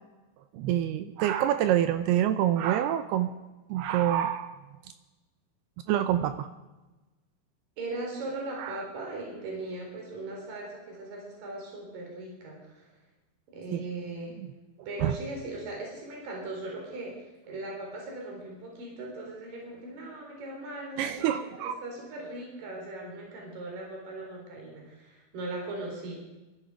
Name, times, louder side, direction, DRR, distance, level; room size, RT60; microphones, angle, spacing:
voice 1, 0.5-3.3 3.7-4.6 5.9-6.5 8.6-8.8 13.7-13.8 15.0-15.2 21.0-21.8, right 11 dB, 80° right, 10 dB, 2.4 m, -26 dB
voice 2, 7.8-12.9 13.5-14.3 14.9-17.2 17.5-26.1, right 2 dB, 50° right, -1 dB, 5.5 m, -39 dB
21.5 x 13.0 x 5.0 m, 1.1 s
omnidirectional pair, 5.1 m